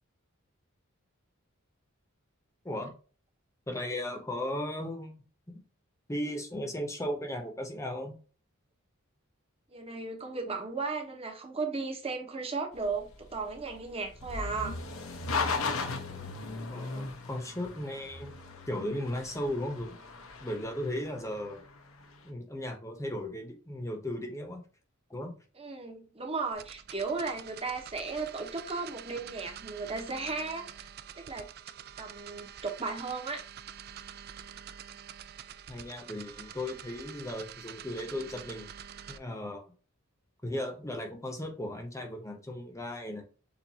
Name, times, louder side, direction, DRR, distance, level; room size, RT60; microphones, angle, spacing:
voice 1, 3.7-5.1 5.5-5.6 6.1-8.2 16.7-18.3 18.7-20.0 20.4-21.6 22.2-24.6 25.1-25.3 35.7-38.7 39.1-39.7 40.4-43.2, left 1 dB, 15° left, 1.0 m, -36 dB
voice 2, 9.7-14.8 25.6-30.9 31.2-31.5 32.0-33.5, right 4 dB, 30° right, 1.1 m, -35 dB
sound 1, 12.7-22.0, left 4 dB, 75° left, 0.9 m, -37 dB
sound 2, 26.5-39.2, right 9 dB, 50° right, 0.4 m, -47 dB
6.9 x 2.6 x 2.8 m
head